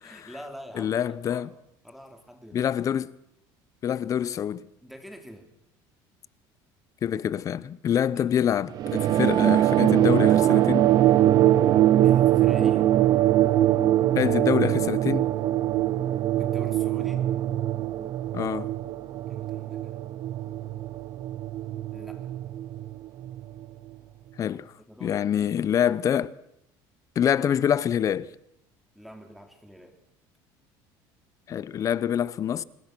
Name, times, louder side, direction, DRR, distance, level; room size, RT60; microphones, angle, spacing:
voice 1, 0.0-1.5 1.8-2.7 4.8-5.5 8.2-8.3 12.0-12.9 16.3-17.3 19.3-20.1 21.9-22.3 24.8-25.9 29.0-29.9, equal, ahead, 3.5 m, -46 dB
voice 2, 0.8-1.5 2.5-3.1 3.8-4.7 7.0-10.9 14.2-15.3 18.3-18.7 24.4-24.7 25.0-26.3 27.2-28.3 31.5-32.6, left 9 dB, 40° left, 0.8 m, -26 dB
sound 1, 8.8-23.6, right 13 dB, 50° right, 0.8 m, -22 dB
26.0 x 20.5 x 6.2 m
cardioid pair, 130°, 9 cm